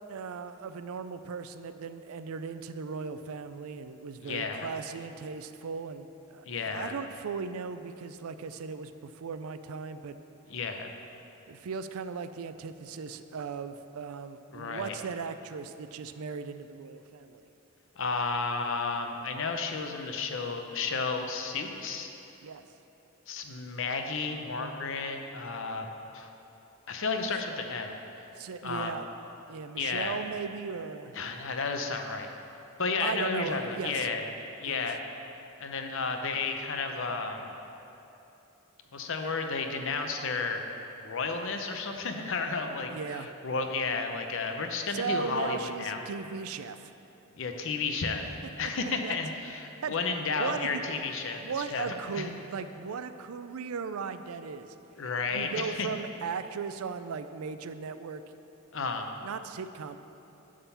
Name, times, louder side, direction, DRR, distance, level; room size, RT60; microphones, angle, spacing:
voice 1, 0.1-10.2 11.5-17.4 22.4-22.6 28.4-29.1 29.5-31.1 33.0-34.1 34.6-34.8 42.9-43.3 44.9-46.9 49.0-49.1 49.8-49.9 50.3-50.8 51.4-54.7 55.3-58.4 59.2-60.0, right 5 dB, 90° right, 11 dB, 0.4 m, -37 dB
voice 2, 4.2-4.7 6.4-6.9 10.5-10.9 14.5-14.9 18.0-22.1 23.3-25.9 26.1-26.3 26.9-27.9 28.6-28.9 29.8-30.2 31.1-32.3 32.8-34.2 34.6-35.1 35.6-37.5 38.9-40.6 41.0-46.0 47.3-48.2 48.6-51.4 51.7-52.3 55.0-55.9 58.7-59.1, left 4 dB, 60° left, 5 dB, 0.7 m, -32 dB
11.0 x 3.8 x 7.0 m, 3.0 s
head